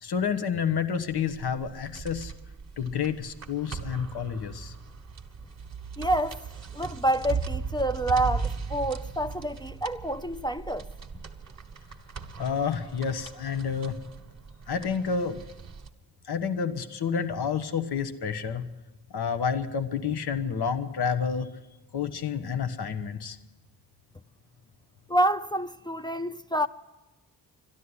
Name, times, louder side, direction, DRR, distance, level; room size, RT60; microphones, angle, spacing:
voice 1, 0.0-2.3 2.8-4.7 12.4-14.0 14.7-15.4 16.2-18.7 19.1-21.5 21.9-23.4, left 6 dB, 65° left, 1.2 m, -29 dB
sound 1, 1.1-15.9, right 5 dB, 40° right, 1.4 m, -38 dB
voice 2, 6.0-6.4 6.7-10.9 25.1-26.7, right 1 dB, 10° left, 0.5 m, -27 dB
12.5 x 11.5 x 9.8 m
cardioid pair, 55°, 42 cm